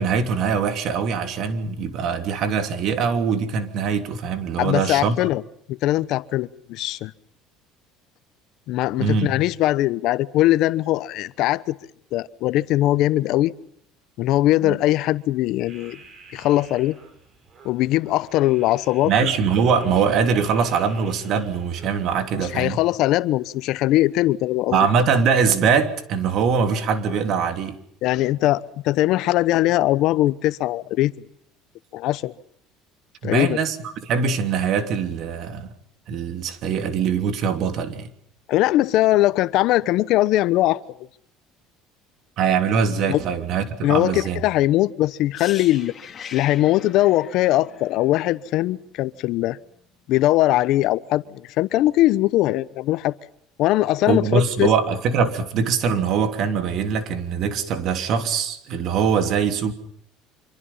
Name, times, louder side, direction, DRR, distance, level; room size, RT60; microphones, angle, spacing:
voice 1, 0.0-5.1 9.0-9.3 14.6-14.8 19.0-22.8 24.7-27.8 33.2-35.7 36.1-38.1 42.4-44.4 54.1-59.7, right 6 dB, 55° right, 3.1 m, -22 dB
voice 2, 4.6-5.4 5.7-7.1 8.7-11.8 12.1-13.5 14.2-16.0 16.3-17.0 17.6-19.1 22.4-24.8 28.0-31.1 31.9-32.3 33.2-33.6 38.5-40.8 43.1-43.2 43.8-45.9 46.3-49.6 50.1-53.1 53.6-54.7, left 15 dB, 65° left, 1.0 m, -20 dB
sound 1, 15.7-21.9, right 4 dB, 40° right, 6.2 m, -47 dB
sound 2, 45.3-49.2 49.5-49.7, left 7 dB, 30° left, 3.4 m, -41 dB
26.0 x 25.0 x 5.7 m
cardioid pair, 115°, 0 cm